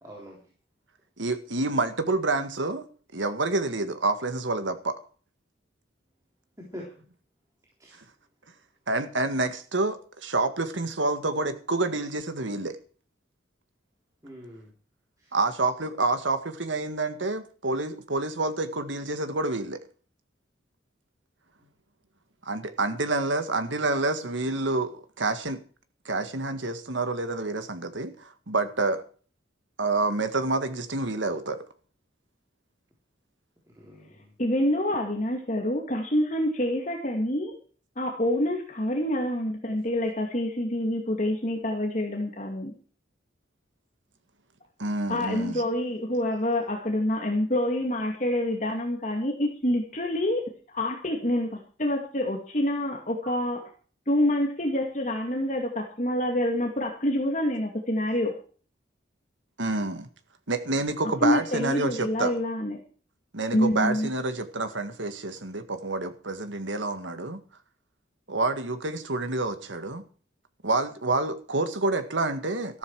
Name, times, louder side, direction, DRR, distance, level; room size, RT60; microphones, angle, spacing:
voice 1, 0.0-0.4 6.6-6.8 7.8-8.0 14.2-14.7 15.2-15.3 33.8-34.3 53.2-53.3, equal, 20° right, -2 dB, 3.7 m, -44 dB
voice 2, 1.2-2.9 3.1-5.0 8.9-12.8 15.3-19.8 22.4-25.6 26.1-29.0 29.8-31.6 44.8-45.6 59.6-60.1 60.5-62.3 63.3-67.4 68.3-70.0 70.6-72.8, right 2 dB, 85° right, 9 dB, 1.9 m, -28 dB
voice 3, 34.4-37.5 38.0-42.7 45.1-53.6 54.1-58.3 61.2-62.8 63.5-64.1, left 1 dB, 40° left, 2 dB, 2.3 m, -27 dB
14.0 x 12.5 x 4.8 m, 0.41 s
head